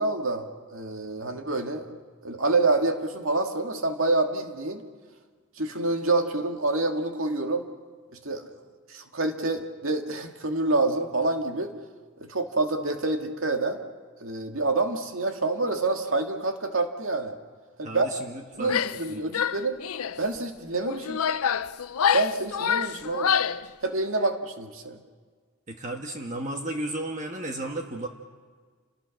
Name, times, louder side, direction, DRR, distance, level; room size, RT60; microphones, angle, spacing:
voice 1, 0.0-1.9 2.2-4.8 5.6-7.7 8.2-8.5 8.9-11.7 12.2-13.8 14.2-17.3 17.8-18.1 18.6-19.8 20.2-21.2 22.1-23.4 23.8-25.0, right 2 dB, 70° right, 4 dB, 2.2 m, -27 dB
voice 2, 17.8-18.8 19.1-19.2 25.7-28.1, right 1 dB, 35° right, 3 dB, 1.5 m, -34 dB
Female speech woman speaking / Yell, 18.6-19.1 19.3-20.2 20.8-23.7, left 8 dB, 90° left, 0.6 m, -26 dB
29.5 x 20.5 x 6.5 m, 1.5 s
head